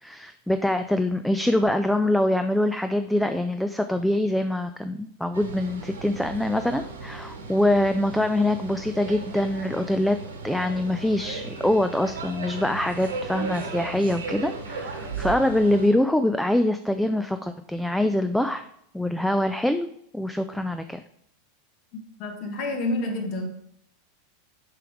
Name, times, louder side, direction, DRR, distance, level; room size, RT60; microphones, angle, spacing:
voice 1, 0.0-10.2 10.4-18.7 18.9-19.9 20.1-21.0, left 1 dB, 5° left, 9 dB, 0.3 m, -24 dB
sound 1, 5.3-15.9, right 4 dB, 75° right, 1.2 m, -36 dB
voice 2, 22.2-23.5, left 2 dB, 50° left, 4 dB, 1.5 m, -28 dB
7.6 x 4.8 x 3.5 m, 0.71 s
figure-of-eight pair, 90°, 0 cm